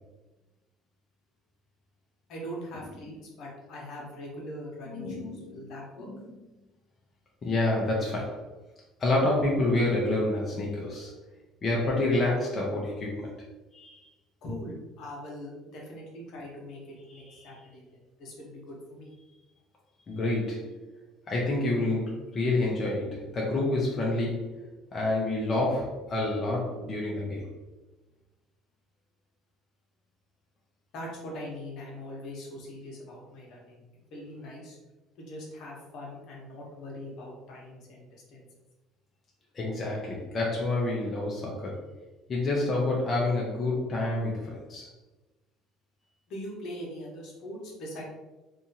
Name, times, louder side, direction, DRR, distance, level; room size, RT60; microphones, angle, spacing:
voice 1, 2.3-6.1 14.4-19.1 30.9-33.8 34.1-34.8 35.2-38.5 46.3-48.0, equal, 65° left, -2 dB, 1.0 m, -41 dB
voice 2, 4.9-5.6 6.1-6.3 7.4-8.5 9.0-11.1 11.6-13.4 13.7-14.1 17.1-17.5 20.1-20.9 21.3-24.6 24.9-27.5 39.5-41.9 42.3-44.9, left 2 dB, 35° left, -3 dB, 0.6 m, -28 dB
2.7 x 2.4 x 2.8 m, 1.1 s
cardioid pair, 105°, 0 cm